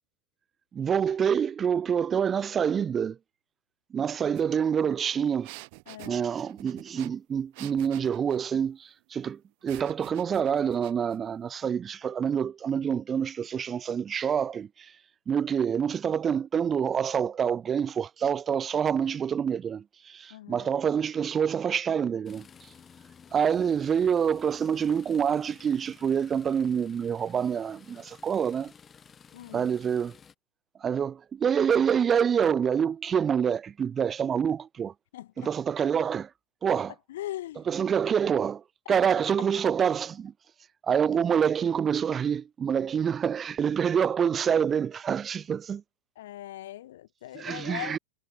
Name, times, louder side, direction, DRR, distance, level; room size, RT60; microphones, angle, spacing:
voice 1, 0.7-3.2 3.9-5.5 6.1-14.9 15.3-22.5 23.3-28.7 29.5-30.2 30.8-34.9 35.4-36.3 36.6-36.9 37.7-38.6 38.9-40.3 40.9-45.8 47.3-48.0, right 7 dB, 20° right, 0.3 m, -27 dB
sound 1, 4.3-4.4 4.8-8.5 9.7-11.2, right 30 dB, 45° right, 2.4 m, -48 dB
voice 2, 5.9-6.3 20.3-20.7 29.3-29.7 35.1-35.5 37.1-37.9 38.9-39.0 46.2-48.0, left 14 dB, 55° left, 0.3 m, -40 dB
sound 2, 22.3-30.4, left 7 dB, 20° left, 2.9 m, -53 dB
figure-of-eight pair, 90°, 0 cm